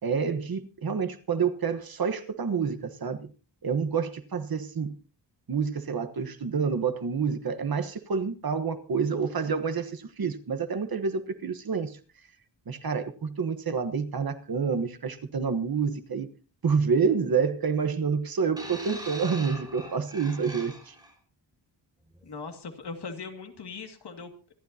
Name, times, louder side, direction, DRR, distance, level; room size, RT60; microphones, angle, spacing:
voice 1, 0.0-3.3 3.6-4.9 5.5-12.0 12.7-16.3 16.6-20.9, right 5 dB, 50° right, 1.3 m, -28 dB
sound 1, 18.6-21.1 22.0-22.2, equal, 10° right, 4.2 m, -42 dB
voice 2, 22.2-24.5, left 4 dB, 60° left, 2.3 m, -40 dB
26.0 x 12.0 x 2.8 m
wide cardioid pair, 160°, 44 cm